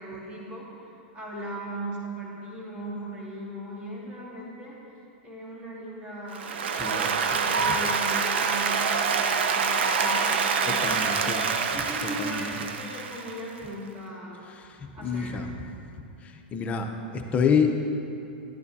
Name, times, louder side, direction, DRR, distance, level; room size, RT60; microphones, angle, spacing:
voice 1, 0.0-4.8 5.2-6.6 7.3-11.0 11.7-14.4 14.9-15.4, right 1 dB, 20° right, -5 dB, 2.1 m, -38 dB
Applause, 6.3-13.5, right 5 dB, 85° right, 0.6 m, -26 dB
voice 2, 6.7-7.1 10.7-11.5 12.2-12.7 14.5-14.7 15.0-15.5 16.2-17.8, left 6 dB, 25° left, 4 dB, 0.6 m, -28 dB
10.5 x 9.6 x 2.7 m, 2.7 s
supercardioid pair, 140°, 6 cm